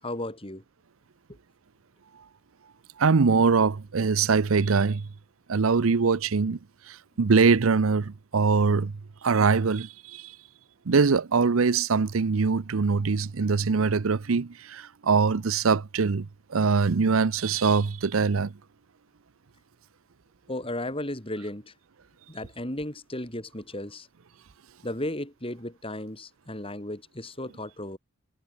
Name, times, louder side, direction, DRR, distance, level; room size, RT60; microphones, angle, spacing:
voice 1, 0.0-0.6 20.5-21.7 22.3-24.1 24.8-28.0, left 1 dB, 25° left, 5.9 m, -35 dB
voice 2, 3.0-5.1 5.5-6.6 6.9-8.9 9.2-10.3 10.9-18.5, right 5 dB, 80° right, 0.6 m, -23 dB
head